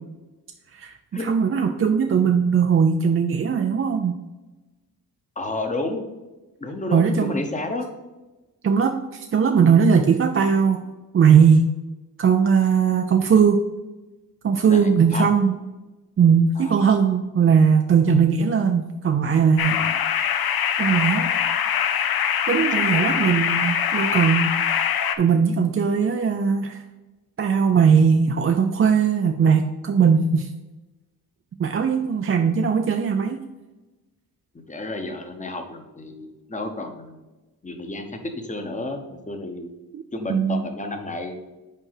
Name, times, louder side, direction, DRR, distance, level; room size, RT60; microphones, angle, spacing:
voice 1, 0.7-4.2 6.9-7.4 8.6-10.8 11.1-11.7 12.2-13.6 14.4-15.6 16.2-19.8 20.8-21.3 22.0-22.1 22.5-24.5 25.2-26.8 27.4-30.5 31.6-33.4 39.9-40.0 40.3-40.7, right 6 dB, 40° right, 5 dB, 0.4 m, -19 dB
voice 2, 5.4-6.0 6.6-7.8 14.7-15.3 16.6-16.8 19.7-19.8 34.7-37.2 37.6-39.7 40.1-41.4, left 2 dB, 20° left, 5 dB, 0.9 m, -31 dB
sound 1, 19.6-25.2, left 8 dB, 80° left, 0.7 m, -23 dB
5.4 x 4.8 x 5.7 m, 1.1 s
wide cardioid pair, 145°, 36 cm